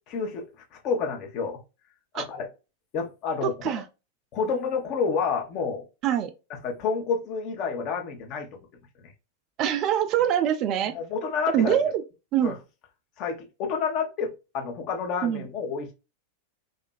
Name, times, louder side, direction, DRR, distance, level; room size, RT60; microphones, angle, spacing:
voice 1, 0.1-1.6 2.1-2.5 2.9-3.5 4.3-5.8 6.6-8.6 9.0-9.1 10.9-11.8 12.4-12.5 13.2-15.9, left 5 dB, 40° left, 0.7 m, -29 dB
voice 2, 3.4-3.8 6.0-6.3 9.6-10.9 11.5-12.0 12.3-12.6 15.2-15.5, right 10 dB, 35° right, 0.3 m, -24 dB
2.8 x 2.4 x 2.2 m
figure-of-eight pair, 90°, 0 cm